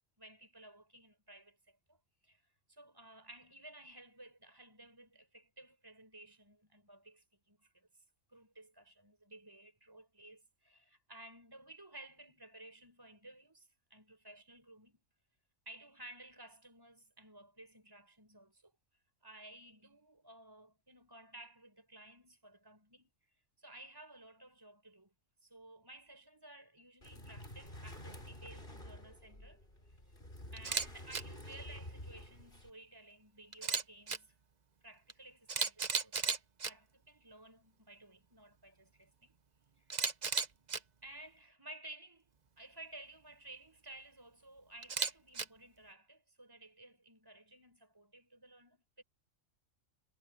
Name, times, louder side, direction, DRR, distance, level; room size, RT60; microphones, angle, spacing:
voice 1, 0.2-7.9 8.3-15.0 15.6-18.7 19.2-23.1 23.6-25.1 25.4-30.0 30.5-34.3 34.8-36.4 36.6-39.4 39.8-40.0 41.0-42.3 42.6-49.0, right 1 dB, 15° right, 4.8 m, -56 dB
sound 1, 27.0-32.7, left 1 dB, 40° left, 6.1 m, -50 dB
Camera, 30.6-30.9 31.1-31.2 33.5-34.2 35.1-35.2 35.5-36.7 39.9-40.8 44.8-45.4, right 5 dB, 35° right, 1.0 m, -34 dB
omnidirectional pair, 1.3 m